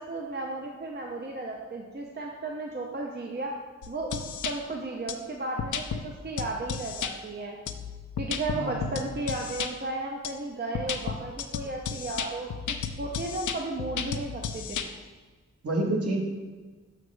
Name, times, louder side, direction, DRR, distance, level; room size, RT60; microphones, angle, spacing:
voice 1, 0.0-3.5 3.9-7.6 8.2-14.9, right 2 dB, 35° right, 0 dB, 0.6 m, -34 dB
sound 1, 3.8-4.5 5.1-5.2 5.6-6.0 6.4-7.1 7.7-9.7 10.2-10.3 10.7-14.9, left 7 dB, 85° left, 0.5 m, -33 dB
voice 2, 8.6-9.1 15.6-16.2, right 2 dB, 55° right, 0 dB, 1.2 m, -29 dB
6.4 x 6.3 x 3.2 m, 1.4 s
wide cardioid pair, 130°, 29 cm